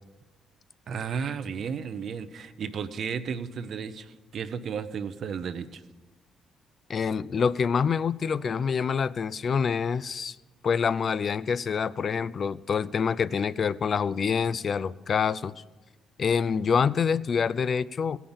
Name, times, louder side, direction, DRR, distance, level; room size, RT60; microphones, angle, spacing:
voice 1, 0.9-5.8, right 6 dB, 60° right, 11 dB, 0.7 m, -33 dB
voice 2, 6.9-10.4 10.6-15.5 16.2-18.2, left 6 dB, 50° left, 17 dB, 0.3 m, -26 dB
16.5 x 5.6 x 7.0 m, 1.2 s
cardioid pair, 90°, 0 cm